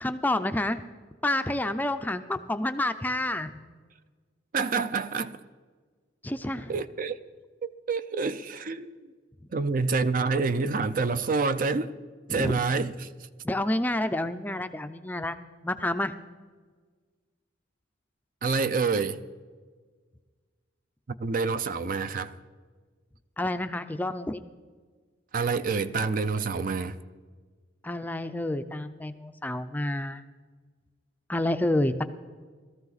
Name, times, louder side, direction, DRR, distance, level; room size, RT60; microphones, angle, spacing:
voice 1, 0.0-0.8 1.2-3.6 6.2-6.8 12.3-12.6 13.4-15.4 15.6-16.1 23.4-24.4 27.8-30.2 31.3-32.0, left 1 dB, 10° left, 0.4 m, -29 dB
voice 2, 4.5-5.4 6.7-7.2 7.9-9.1 9.5-11.9 12.3-13.1 18.4-19.2 21.2-22.3 25.3-27.0, right 4 dB, 45° right, 0.5 m, -27 dB
17.5 x 13.5 x 4.0 m
head